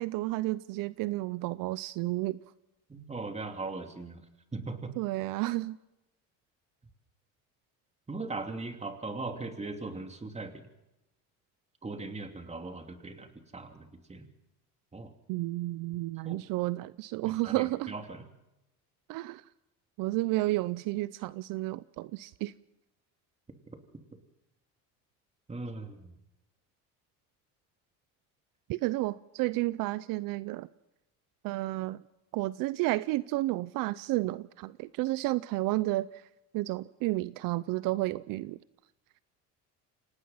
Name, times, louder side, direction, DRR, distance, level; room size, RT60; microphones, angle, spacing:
voice 1, 0.0-2.4 5.0-5.8 15.3-17.9 19.1-19.4 20.0-22.5 28.7-30.7 31.4-32.0 32.3-36.2 36.5-38.6, right 19 dB, 70° right, 0.6 m, -31 dB
voice 2, 2.9-4.2 4.5-4.9 8.1-10.7 11.8-14.3 14.9-15.1 16.2-16.4 17.2-18.2 23.7-23.8 25.5-26.2, right 3 dB, 20° right, 2.9 m, -39 dB
26.5 x 18.0 x 5.7 m
supercardioid pair, 90°, 34 cm